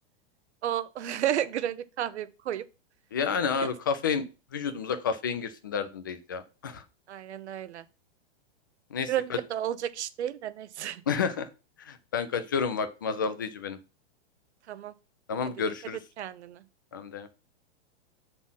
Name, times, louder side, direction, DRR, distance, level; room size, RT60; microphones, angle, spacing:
voice 1, 0.6-2.7 3.6-3.7 7.1-7.8 9.1-11.0 14.7-14.9 16.2-16.6, right 11 dB, 90° right, 0.8 m, -32 dB
voice 2, 3.1-4.2 4.5-6.8 8.9-9.1 11.1-11.5 11.8-13.8 15.3-16.0 16.9-17.3, left 6 dB, 20° left, 0.3 m, -30 dB
7.4 x 4.0 x 5.5 m
supercardioid pair, 170°, 33 cm